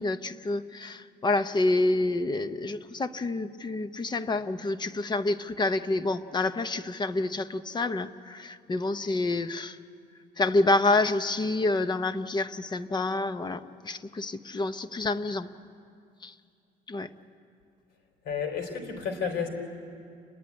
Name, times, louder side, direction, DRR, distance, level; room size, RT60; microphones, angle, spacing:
voice 1, 0.0-9.8 10.4-15.5 16.2-16.3 16.9-17.1, left 2 dB, 25° left, 12 dB, 0.8 m, -28 dB
voice 2, 18.3-19.5, left 6 dB, 80° left, 4 dB, 3.9 m, -31 dB
29.5 x 12.0 x 9.7 m, 2.3 s
cardioid pair, 110°, 17 cm